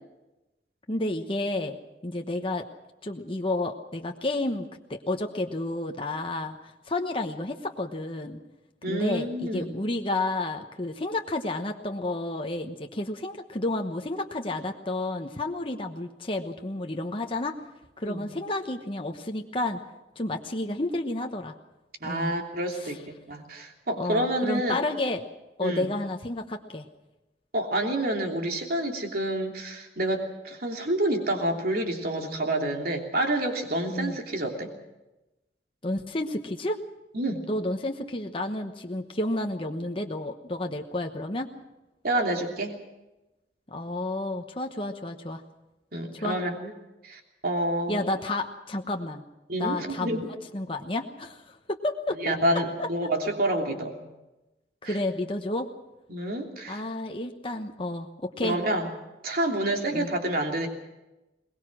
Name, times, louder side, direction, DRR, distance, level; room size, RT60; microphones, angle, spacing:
voice 1, 0.9-1.8 2.0-2.7 3.0-8.4 8.9-17.6 18.0-19.8 20.2-21.5 22.0-22.3 22.7-23.0 24.0-25.2 25.6-26.9 33.9-34.2 35.8-36.8 37.5-41.5 43.7-45.4 46.1-46.4 47.9-49.2 49.6-50.3 50.5-52.3 52.8-52.9 54.8-55.7 56.7-58.6 59.9-60.1, left 2 dB, 30° left, 4 dB, 1.1 m, -31 dB
voice 2, 8.8-9.7 18.0-18.3 22.0-24.7 25.6-25.9 27.5-34.7 37.1-37.4 42.0-42.8 45.9-46.7 47.0-48.0 49.5-50.3 52.2-54.0 54.8-55.0 56.1-56.8 58.4-58.9 59.2-60.7, right 1 dB, 60° right, 2 dB, 3.1 m, -28 dB
22.0 x 20.0 x 6.3 m, 1.0 s
head